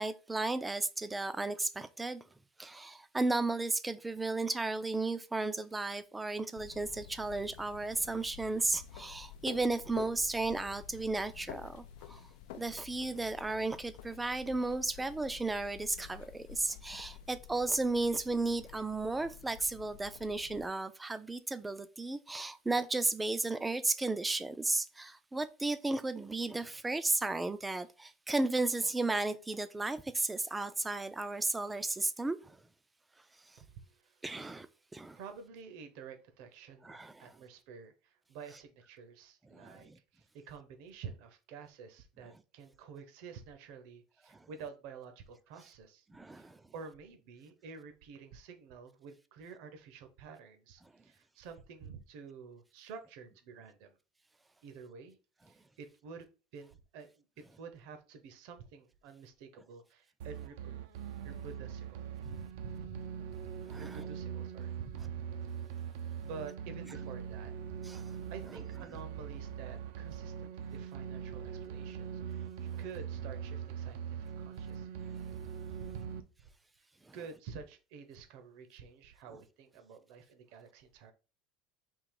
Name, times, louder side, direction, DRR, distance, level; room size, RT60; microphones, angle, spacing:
voice 1, 0.0-2.2 2.6-12.2 12.5-32.6 34.2-34.7 34.9-35.2 36.8-37.3 39.5-40.0 46.1-46.6 63.7-64.1 67.8-68.0 77.1-77.2, right 2 dB, 10° right, 0.4 m, -34 dB
sound 1, 6.6-20.6, left 10 dB, 80° left, 0.3 m, -50 dB
voice 2, 33.6-34.2 35.1-46.1 46.3-54.0 54.6-55.2 55.5-56.3 56.5-60.7 61.2-63.0 63.8-65.2 66.2-67.5 68.3-74.9 75.8-76.1 77.1-81.1, right 5 dB, 65° right, 0.8 m, -50 dB
sound 2, 60.2-76.2, right 8 dB, 80° right, 0.5 m, -42 dB
3.7 x 2.9 x 4.6 m
supercardioid pair, 145°, 0 cm